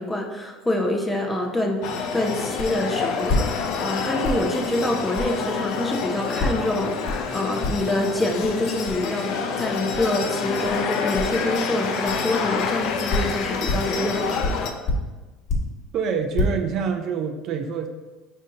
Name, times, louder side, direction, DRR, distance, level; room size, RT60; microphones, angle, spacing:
voice 1, 0.0-1.8 2.1-14.6, left 1 dB, 10° left, 1 dB, 0.7 m, -26 dB
sound 1, 1.8-14.7, left 5 dB, 60° left, 0.4 m, -28 dB
sound 2, 2.6-2.8 3.2-3.9 4.2-4.5 5.1-5.3 6.4-6.7 7.1-7.3 7.6-8.0 8.4-8.5 8.9-9.0 9.9-10.1 10.6-10.9 11.1-11.4 12.1-12.2 12.9-14.0 14.4-15.8 16.2-16.4, left 2 dB, 45° left, 1.4 m, -27 dB
voice 2, 15.9-17.9, right 6 dB, 50° right, 5 dB, 0.4 m, -26 dB
5.0 x 2.7 x 3.8 m, 1.2 s
supercardioid pair, 95°, 0 cm